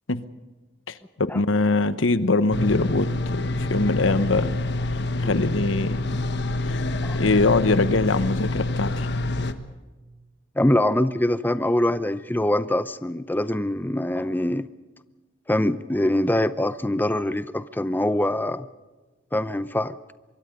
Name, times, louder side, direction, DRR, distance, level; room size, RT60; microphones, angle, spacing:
voice 1, 0.9-4.6 5.2-6.0 6.6-6.8 7.1-9.1, left 3 dB, 80° left, 13 dB, 1.1 m, -23 dB
sound 1, 2.5-9.5, left 2 dB, 60° left, 1.3 m, -26 dB
voice 2, 10.6-14.7 15.5-18.7 19.3-20.0, left 1 dB, 10° left, 13 dB, 0.6 m, -23 dB
25.0 x 23.0 x 5.3 m, 1.2 s
head